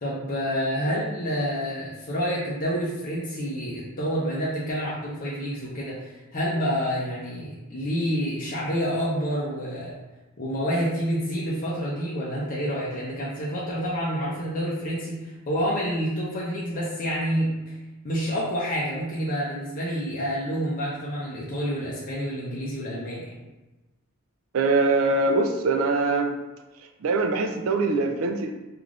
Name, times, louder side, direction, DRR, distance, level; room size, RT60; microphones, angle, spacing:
voice 1, 0.0-9.9 10.4-17.5 18.0-23.3, equal, 40° left, -6 dB, 0.6 m, -28 dB
voice 2, 24.5-26.4 27.0-28.5, right 3 dB, 65° right, 5 dB, 0.4 m, -23 dB
3.3 x 2.5 x 2.4 m, 1.1 s
head